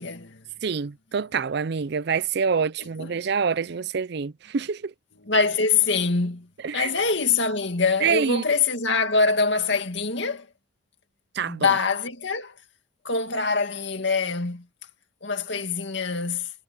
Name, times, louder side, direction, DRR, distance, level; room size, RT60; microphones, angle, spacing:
voice 1, 0.0-0.5 2.8-3.2 5.2-6.5 6.7-10.5 11.5-12.6 13.0-14.7 15.2-16.5, left 4 dB, 60° left, 2.4 m, -24 dB
voice 2, 0.6-4.9 6.6-6.9 8.0-8.4 11.3-11.7, right 6 dB, 55° right, 0.4 m, -26 dB
head